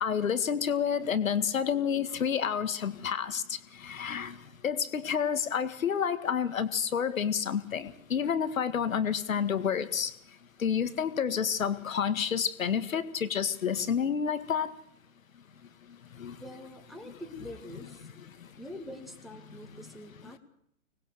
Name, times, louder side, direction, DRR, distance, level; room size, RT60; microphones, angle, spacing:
voice 1, 0.0-4.4 4.6-10.1 10.6-14.7 16.2-16.4, left 7 dB, 70° left, 13 dB, 2.0 m, -29 dB
voice 2, 16.4-18.1 18.6-20.4, left 1 dB, ahead, 3 dB, 2.5 m, -45 dB
25.0 x 19.5 x 6.8 m, 0.70 s
hypercardioid pair, 135°, 41 cm